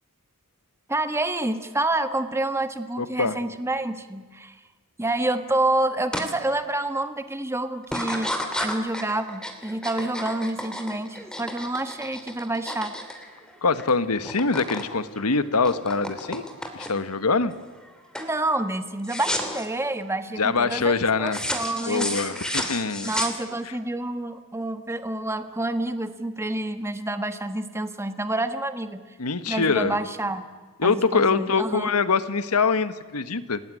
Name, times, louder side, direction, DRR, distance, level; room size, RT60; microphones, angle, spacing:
voice 1, 0.9-4.6 5.0-13.0 18.2-22.2 23.0-29.0 29.5-30.4 30.8-31.9, right 2 dB, 10° right, 8 dB, 1.4 m, -28 dB
voice 2, 3.0-3.4 13.6-16.4 16.7-17.5 20.4-21.4 21.9-23.1 29.2-30.0 30.8-33.6, left 4 dB, 85° left, 12 dB, 1.3 m, -24 dB
sound 1, 6.1-6.3 6.8-7.2 7.8-13.9 14.1-14.9 15.2-17.1 17.6-17.9 18.1-18.4 19.0-19.7 21.3-23.8, left 1 dB, 5° left, 2.9 m, -32 dB
28.5 x 19.0 x 9.8 m, 1.4 s
head